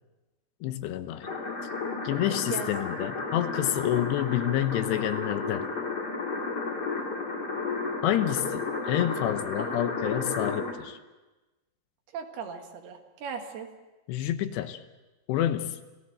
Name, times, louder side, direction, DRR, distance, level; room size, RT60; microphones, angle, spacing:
voice 1, 0.6-1.3 2.0-5.7 8.0-11.0 14.1-14.8 15.3-15.8, left 12 dB, 80° left, 10 dB, 3.0 m, -28 dB
sound 1, 1.2-10.7, left 4 dB, 25° left, 3.0 m, -32 dB
voice 2, 2.3-2.7 9.6-9.7 12.1-13.7, right 6 dB, 70° right, 5 dB, 3.6 m, -38 dB
28.5 x 17.5 x 7.9 m, 1.1 s
omnidirectional pair, 5.1 m